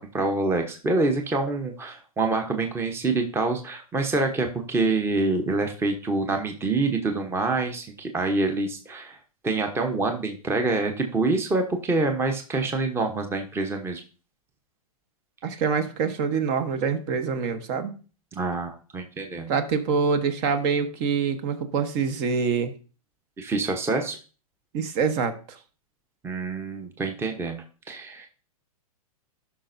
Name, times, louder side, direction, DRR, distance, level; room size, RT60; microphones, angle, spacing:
voice 1, 0.1-9.2 9.4-14.0 18.3-19.5 23.4-24.2 26.2-28.3, right 3 dB, 10° right, 5 dB, 0.9 m, -26 dB
voice 2, 15.4-17.9 19.5-22.7 24.7-25.6, right 5 dB, 45° right, 9 dB, 1.2 m, -25 dB
12.5 x 5.9 x 2.6 m, 0.36 s
hypercardioid pair, 120°, 19 cm